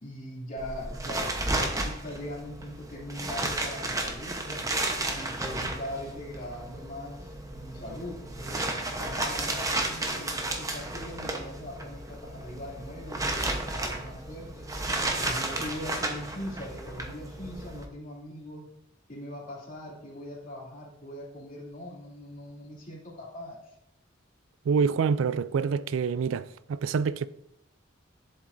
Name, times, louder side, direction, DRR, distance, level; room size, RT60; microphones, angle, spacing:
voice 1, 0.0-4.7 5.1-14.6 15.0-18.7 19.1-23.8, left 1 dB, 45° left, 2.7 m, -41 dB
sound 1, 0.6-17.8, right 2 dB, 15° right, 0.9 m, -33 dB
voice 2, 24.7-27.3, right 5 dB, 80° right, 0.3 m, -26 dB
11.0 x 7.4 x 2.6 m
head